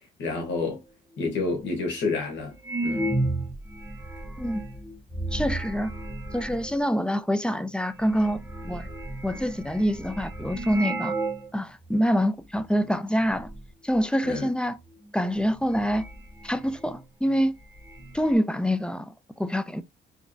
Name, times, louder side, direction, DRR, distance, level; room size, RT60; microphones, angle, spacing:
voice 1, 0.2-0.8 1.2-2.5 2.8-3.2 14.2-14.5, left 3 dB, 70° left, 1.4 m, -29 dB
sound 1, 1.1-1.2 1.9-2.0 2.6-6.9 7.6-7.7 8.0-11.5 11.8-11.9 12.5-12.9 13.2-13.6 14.9-15.0 15.4-17.0 17.3-17.4 17.6-18.3, right 2 dB, 10° right, 1.0 m, -33 dB
voice 2, 5.3-5.9 6.3-8.9 9.2-11.1 11.5-13.5 13.8-14.8 15.1-16.1 16.4-17.5 18.1-19.8, equal, 5° left, 0.4 m, -26 dB
3.4 x 3.0 x 2.6 m
cardioid pair, 90°, 20 cm